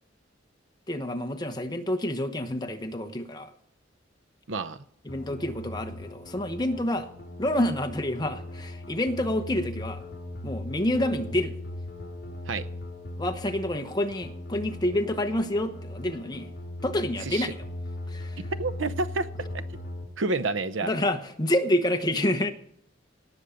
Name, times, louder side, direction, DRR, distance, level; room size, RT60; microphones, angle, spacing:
voice 1, 0.9-3.5 5.0-7.1 7.4-10.0 10.4-11.6 13.2-16.5 16.8-17.6 18.1-18.4 20.8-22.5, left 1 dB, 20° left, 6 dB, 1.0 m, -28 dB
voice 2, 4.5-4.8 12.5-12.7 17.3-17.5 18.5-19.6 20.2-20.9, right 3 dB, 75° right, 13 dB, 0.7 m, -29 dB
sound 1, 5.1-20.1, left 1 dB, 55° left, 4.2 m, -39 dB
18.0 x 7.2 x 5.1 m, 0.70 s
head